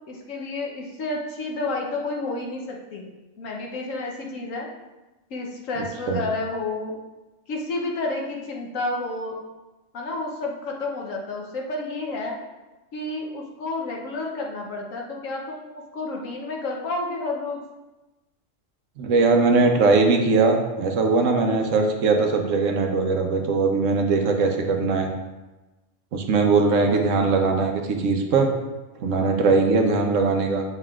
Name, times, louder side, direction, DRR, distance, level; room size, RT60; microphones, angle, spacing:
voice 1, 0.1-3.1 3.4-4.7 5.3-7.0 7.5-9.4 9.9-12.4 12.9-17.6 26.9-27.1, left 2 dB, 85° left, -1 dB, 1.2 m, -30 dB
voice 2, 19.0-25.1 26.1-28.5 29.0-30.6, right 4 dB, 80° right, 3 dB, 1.1 m, -20 dB
7.7 x 5.4 x 2.4 m, 1.1 s
omnidirectional pair, 1.3 m